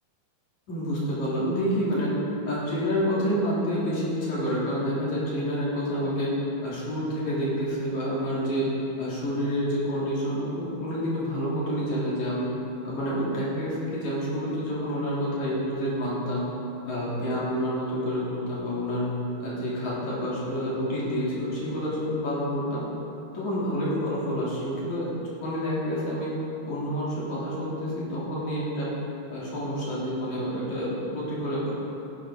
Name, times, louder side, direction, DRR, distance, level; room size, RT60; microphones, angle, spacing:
voice 1, 0.7-2.1 2.5-6.3 6.6-8.7 9.0-12.5 12.8-16.5 16.9-19.1 19.4-22.8 23.3-26.3 26.7-28.9 29.3-31.7, equal, 55° left, -8 dB, 4.1 m, -28 dB
15.0 x 10.0 x 3.8 m, 2.8 s
omnidirectional pair, 4.4 m